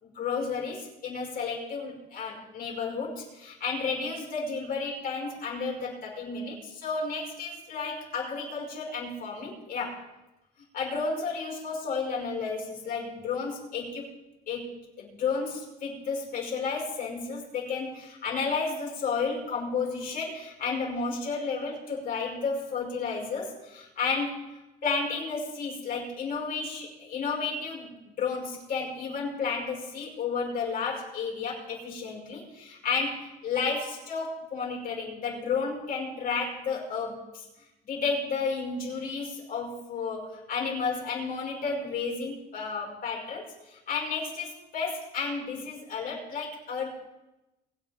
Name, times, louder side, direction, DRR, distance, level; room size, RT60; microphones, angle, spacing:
voice 1, 0.0-10.0 10.7-14.1 14.5-24.4 24.8-37.4 37.8-46.9, left 4 dB, 60° left, -3 dB, 5.9 m, -32 dB
23.0 x 8.7 x 3.7 m, 0.97 s
cardioid pair, 110°, 17 cm